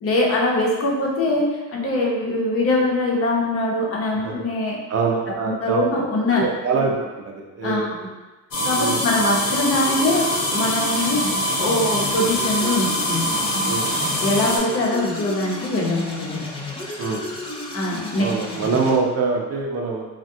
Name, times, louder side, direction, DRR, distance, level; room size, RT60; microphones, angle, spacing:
voice 1, 0.0-4.8 5.4-6.4 7.6-8.1 8.6-13.4 14.2-16.5 17.7-18.6, left 2 dB, 40° left, -2 dB, 0.7 m, -23 dB
voice 2, 4.9-6.1 6.3-6.9 7.2-8.1 8.8-9.0 13.7-14.1 17.0-17.2 18.2-20.0, right 4 dB, 45° right, 0 dB, 0.6 m, -24 dB
sound 1, 8.5-14.6, equal, 75° left, 0.9 m, -24 dB
sound 2, 9.7-19.0, left 1 dB, 15° left, 0.3 m, -33 dB
3.5 x 2.2 x 2.6 m, 1.2 s
cardioid pair, 120°, 35 cm